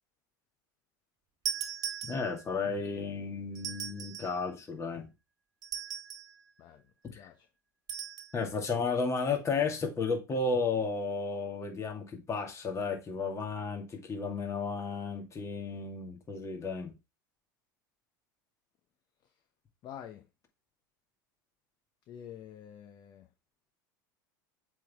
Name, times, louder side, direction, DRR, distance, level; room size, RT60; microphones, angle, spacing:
sound 1, 1.4-2.6 3.5-4.4 5.6-6.4 7.9-8.3, right 9 dB, 35° right, 1.7 m, -38 dB
voice 1, 2.1-5.1 7.1-7.3 8.3-16.9, left 4 dB, 25° left, 2.1 m, -33 dB
voice 2, 19.8-20.3 22.1-23.2, left 9 dB, 45° left, 0.8 m, -47 dB
7.5 x 3.8 x 3.6 m
hypercardioid pair, 100°, 11 cm